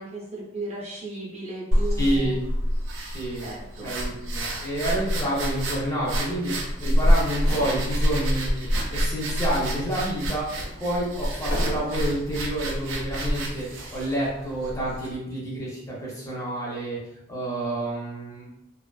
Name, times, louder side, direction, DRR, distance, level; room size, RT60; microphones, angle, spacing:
voice 1, 0.0-2.3 3.4-3.9, right 2 dB, 30° right, -6 dB, 0.7 m, -36 dB
sound 1, 1.7-15.1, equal, 75° right, 0.4 m, -27 dB
voice 2, 2.0-2.4 3.0-3.5 3.8-17.0 17.3-18.5, right 1 dB, 15° left, -6 dB, 0.6 m, -29 dB
sound 2, 7.3-8.4 8.9-9.0 9.7-12.2 13.0-13.4, left 1 dB, 65° left, 0.7 m, -38 dB
2.4 x 2.4 x 2.3 m, 0.86 s
head